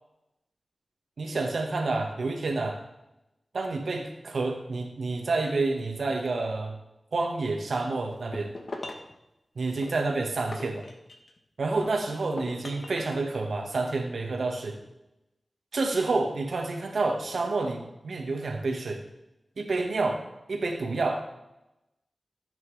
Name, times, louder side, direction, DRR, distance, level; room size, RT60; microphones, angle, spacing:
voice 1, 1.2-2.8 3.5-6.8 7.1-8.5 9.6-10.8 11.6-14.8 15.7-19.0 19.6-20.2 20.5-21.2, right 3 dB, 85° right, 3 dB, 1.8 m, -29 dB
sound 1, 8.1-9.1 9.8-11.4 11.8-13.2, left 2 dB, 65° left, 1.4 m, -41 dB
15.0 x 8.7 x 3.5 m, 0.92 s
wide cardioid pair, 90°, 0 cm